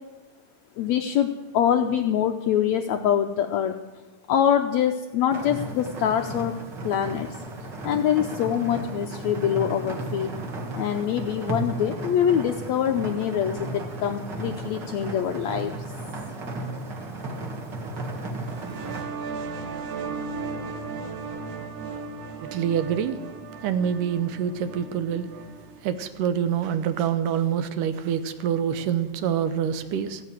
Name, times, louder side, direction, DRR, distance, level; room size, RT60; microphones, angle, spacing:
voice 1, 0.8-3.8 4.3-6.6 6.8-7.4 7.8-10.3 10.8-15.7, left 9 dB, 80° left, 5 dB, 1.6 m, -24 dB
sound 1, 5.3-19.0, right 2 dB, 35° right, 2.2 m, -34 dB
sound 2, 18.4-25.8, right 4 dB, 60° right, 1.8 m, -36 dB
voice 2, 22.4-23.2 23.6-25.3 25.8-30.2, right 8 dB, 75° right, 11 dB, 2.3 m, -26 dB
15.0 x 10.5 x 9.0 m, 1.3 s
omnidirectional pair, 4.0 m